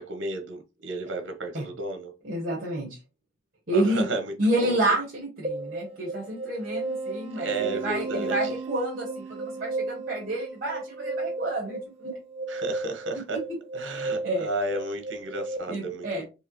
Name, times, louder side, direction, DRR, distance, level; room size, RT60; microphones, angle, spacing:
voice 1, 0.0-2.1 3.7-4.3 4.6-4.8 7.3-8.5 12.5-13.4 13.7-16.3, right 2 dB, 70° right, 1.0 m, -33 dB
voice 2, 2.2-3.0 3.7-4.1 4.4-12.1 14.0-14.5 15.7-16.2, right 1 dB, 45° right, 1.5 m, -29 dB
sound 1, 5.4-15.6, right 3 dB, 30° right, 0.6 m, -34 dB
4.7 x 2.9 x 3.0 m
head